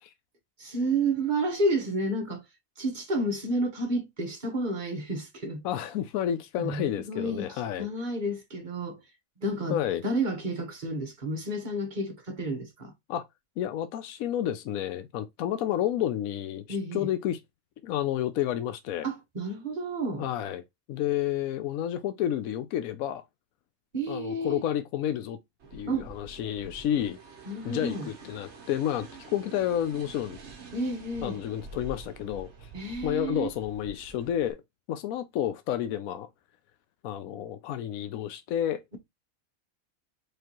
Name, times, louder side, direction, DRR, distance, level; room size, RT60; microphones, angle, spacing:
voice 1, 0.6-2.4 2.8-5.6 6.6-7.5 7.8-9.0 9.4-12.9 16.7-17.1 19.0-20.3 23.9-24.6 25.8-26.1 27.5-28.1 30.7-31.4 32.7-33.5, right 1 dB, 35° right, 1.3 m, -30 dB
voice 2, 5.6-7.9 9.7-10.0 13.1-13.3 13.6-17.4 17.8-19.1 20.2-20.6 20.9-23.2 24.1-25.4 25.7-27.2 27.6-30.4 31.2-32.7 33.0-34.6 34.9-36.3 37.0-38.8, left 11 dB, 80° left, 1.0 m, -30 dB
sound 1, 25.6-34.5, right 3 dB, 55° right, 1.2 m, -47 dB
4.8 x 3.2 x 2.9 m
omnidirectional pair, 1.5 m